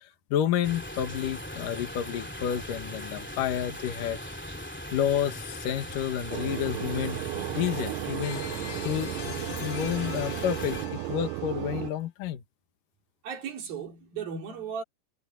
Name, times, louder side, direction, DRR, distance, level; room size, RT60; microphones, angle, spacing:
voice 1, 0.0-4.2 4.9-8.4 8.8-12.4, left 10 dB, 65° left, 3.0 m, -30 dB
sound 1, 0.6-10.9, left 1 dB, 5° left, 1.8 m, -39 dB
sound 2, 6.3-11.9, right 17 dB, 85° right, 2.6 m, -34 dB
sound 3, 8.2-11.9, left 9 dB, 85° left, 4.7 m, -42 dB
voice 2, 13.2-14.8, right 6 dB, 65° right, 5.6 m, -36 dB
omnidirectional pair, 4.6 m